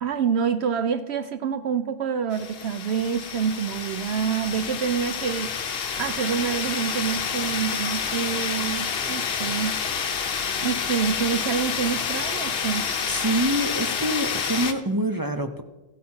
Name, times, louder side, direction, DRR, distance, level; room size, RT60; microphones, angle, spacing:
voice 1, 0.0-9.8 10.6-12.9, right 7 dB, 65° right, 11 dB, 0.8 m, -27 dB
sound 1, 2.3-14.7, left 6 dB, 55° left, 1.0 m, -29 dB
voice 2, 13.1-15.6, right 1 dB, 30° right, 7 dB, 0.4 m, -25 dB
15.0 x 8.3 x 4.4 m, 1.1 s
omnidirectional pair, 1.3 m